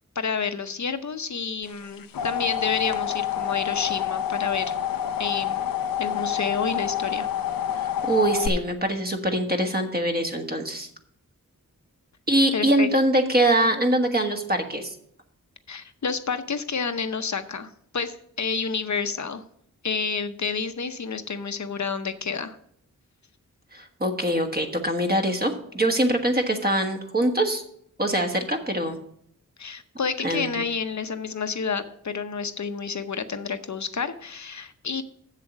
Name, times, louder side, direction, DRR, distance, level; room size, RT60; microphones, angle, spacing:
voice 1, 0.2-4.7 5.2-5.7 6.0-7.3 12.5-12.9 15.7-19.4 19.8-22.6 29.6-35.0, left 5 dB, 55° left, 10 dB, 0.8 m, -29 dB
sound 1, 1.8-8.5, left 10 dB, 90° left, 0.6 m, -28 dB
voice 2, 7.8-10.9 12.3-15.0 23.7-27.6 28.0-29.0 30.2-30.6, right 1 dB, 30° right, 4 dB, 1.4 m, -23 dB
7.5 x 7.3 x 6.1 m, 0.68 s
wide cardioid pair, 60°, 34 cm